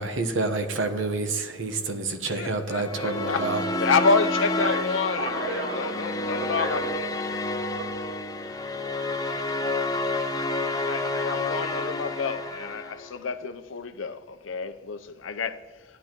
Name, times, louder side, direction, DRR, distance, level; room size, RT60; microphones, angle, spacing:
voice 1, 0.0-3.7, right 3 dB, 80° right, 1.0 m, -28 dB
voice 2, 2.4-3.4 3.8-7.1 10.7-15.6, left 4 dB, 85° left, 0.6 m, -29 dB
sound 1, 2.8-13.2, left 2 dB, 20° left, 0.7 m, -29 dB
voice 3, 4.6-8.4, right 2 dB, 55° right, 1.8 m, -36 dB
15.0 x 10.0 x 3.0 m
head